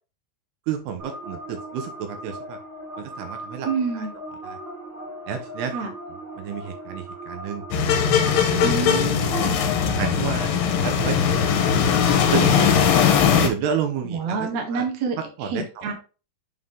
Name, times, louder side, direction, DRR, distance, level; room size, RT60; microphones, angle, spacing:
voice 1, 0.7-2.6 3.0-3.7 3.9-4.1 4.4-4.6 5.3-5.7 6.4-7.6 8.4-8.8 9.3-9.7 10.0-11.5 12.3-12.8 13.4-14.9 15.4-15.9, right 7 dB, 80° right, 6 dB, 2.8 m, -30 dB
sound 1, 1.0-8.4, right 1 dB, 35° right, 2.4 m, -38 dB
voice 2, 3.6-4.1 5.7-5.9 8.6-9.6 14.0-15.2 15.4-15.9, right 5 dB, 60° right, 2 dB, 2.0 m, -27 dB
sound 2, 7.7-13.5, left 7 dB, 85° left, 3.0 m, -20 dB
7.7 x 3.7 x 3.6 m, 0.34 s
omnidirectional pair, 4.7 m